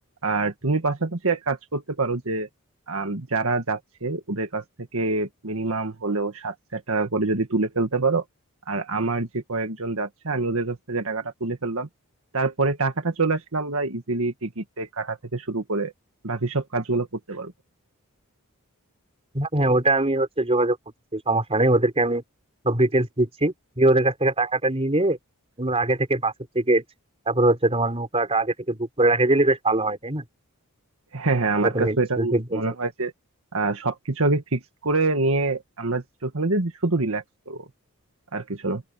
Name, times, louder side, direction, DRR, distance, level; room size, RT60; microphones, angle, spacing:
voice 1, 0.2-2.5 2.9-4.6 4.9-8.2 8.7-11.9 12.3-15.9 16.2-17.5 31.1-33.1 33.5-37.7 38.3-38.8, right 3 dB, 65° right, 1.8 m, -26 dB
voice 2, 19.3-20.8 21.1-22.2 22.6-25.2 25.6-26.8 27.3-30.2 31.6-32.6, right 2 dB, 30° right, 4.0 m, -22 dB
open air
head